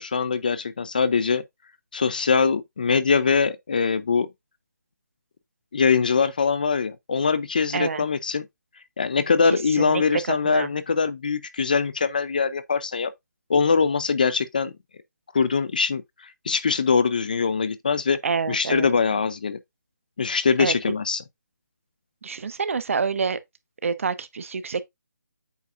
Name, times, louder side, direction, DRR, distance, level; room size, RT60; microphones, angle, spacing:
voice 1, 0.0-1.4 1.9-4.3 5.7-8.4 9.0-13.1 13.5-14.7 15.3-16.0 16.5-18.2 18.5-19.6 20.2-21.2, left 5 dB, 25° left, 0.4 m, -22 dB
voice 2, 7.7-8.0 9.8-10.7 18.2-18.9 20.6-20.7 22.2-23.4 23.8-24.8, right 5 dB, 45° right, 0.8 m, -27 dB
8.3 x 5.3 x 2.5 m
hypercardioid pair, 170°, 10 cm